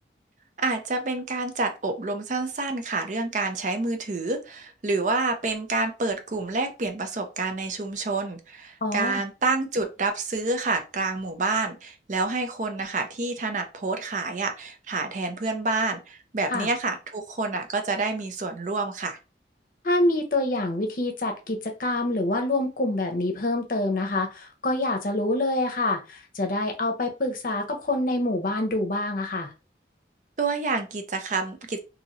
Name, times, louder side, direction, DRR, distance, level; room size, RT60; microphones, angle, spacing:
voice 1, 0.6-19.2 30.4-31.8, right 3 dB, 45° right, 6 dB, 0.5 m, -28 dB
voice 2, 8.8-9.2 16.5-16.7 19.8-29.5, left 2 dB, 50° left, 3 dB, 0.7 m, -26 dB
2.9 x 2.7 x 2.6 m, 0.30 s
head